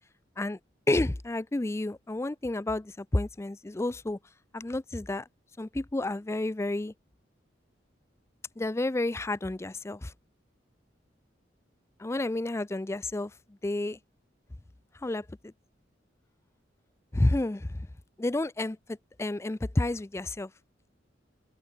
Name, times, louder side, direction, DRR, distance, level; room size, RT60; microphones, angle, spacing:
voice 1, 0.9-4.2 4.5-5.3 5.6-6.9 8.6-10.1 12.0-13.3 13.6-14.0 15.0-15.5 17.1-17.9 18.2-20.5, left 2 dB, 15° left, 0.4 m, -30 dB
open air
head